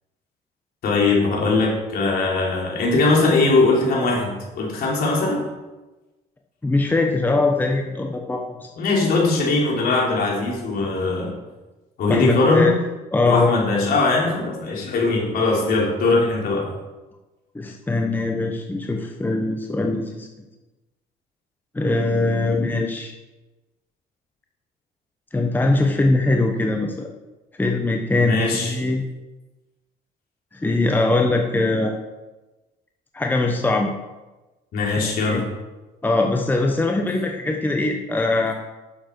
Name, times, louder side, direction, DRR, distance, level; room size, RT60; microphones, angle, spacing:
voice 1, 0.8-5.4 8.8-11.4 12.0-12.7 13.3-16.7 28.2-28.8 34.7-35.4, left 3 dB, 65° left, -2 dB, 3.5 m, -20 dB
voice 2, 6.6-8.4 12.1-12.7 13.1-13.5 17.5-20.3 21.7-23.1 25.3-27.1 27.6-29.0 30.5-31.9 33.1-33.9 34.9-35.4 36.0-38.5, left 2 dB, 10° left, 2 dB, 0.9 m, -21 dB
10.0 x 7.1 x 4.6 m, 1.1 s
cardioid pair, 110°, 17 cm